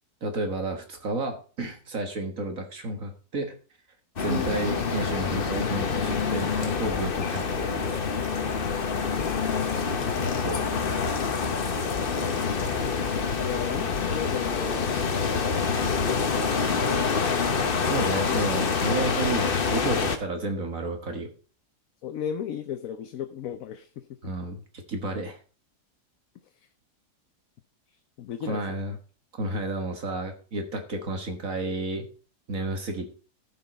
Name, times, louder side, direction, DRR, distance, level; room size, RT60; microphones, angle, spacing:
voice 1, 0.2-3.5 4.2-8.0 10.4-10.9 17.8-21.3 24.2-25.4 28.5-29.0 29.4-32.1 32.5-33.1, right 2 dB, 55° right, 5 dB, 1.8 m, -31 dB
sound 1, 4.2-20.2, left 5 dB, 40° left, 1.0 m, -26 dB
voice 2, 4.3-4.6 9.0-10.4 13.4-14.9 17.8-18.5 22.0-24.0 28.2-28.8, left 9 dB, 65° left, 9 dB, 1.0 m, -35 dB
15.0 x 5.6 x 4.1 m, 0.38 s
omnidirectional pair, 1.7 m